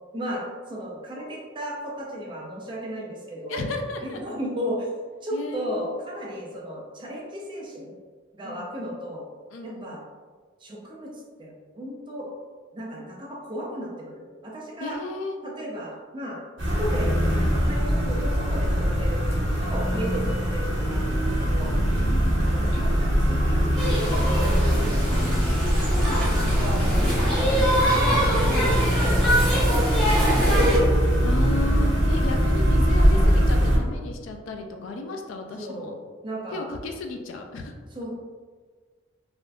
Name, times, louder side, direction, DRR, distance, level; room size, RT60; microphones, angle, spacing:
voice 1, 0.1-3.6 4.0-4.9 5.2-7.9 8.3-9.2 9.6-10.0 10.6-11.1 11.4-12.3 12.7-15.0 15.4-17.2 17.4-21.7 22.4-24.5 24.8-25.1 25.6-28.2 28.7-31.3 31.7-31.9 33.1-33.4 35.6-36.0 36.2-36.6 37.9-38.1, equal, 25° right, -3 dB, 0.5 m, -35 dB
voice 2, 3.5-4.2 5.3-6.0 8.4-8.7 9.5-10.0 14.8-15.4 20.2-20.4 21.4-22.6 25.2-25.8 28.4-28.9 31.2-35.9 36.5-37.7, left 2 dB, 80° left, 4 dB, 0.4 m, -35 dB
sound 1, 16.6-33.8, equal, 65° right, 1.0 m, -22 dB
sound 2, 23.8-30.8, equal, 5° left, 1.0 m, -24 dB
3.4 x 2.5 x 2.3 m, 1.5 s
head